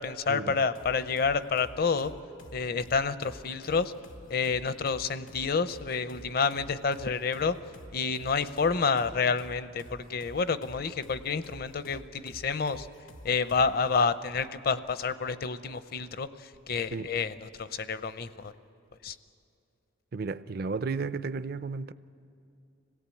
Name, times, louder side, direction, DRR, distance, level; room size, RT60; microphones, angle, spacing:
voice 1, 0.0-2.1 2.5-3.9 4.3-7.6 7.9-12.9 13.2-18.5 19.0-19.2, left 5 dB, 50° left, 0.7 m, -29 dB
sound 1, 0.7-13.9, left 1 dB, 90° left, 1.3 m, -50 dB
voice 2, 20.1-21.9, right 4 dB, 50° right, 0.5 m, -33 dB
26.0 x 17.5 x 8.5 m
head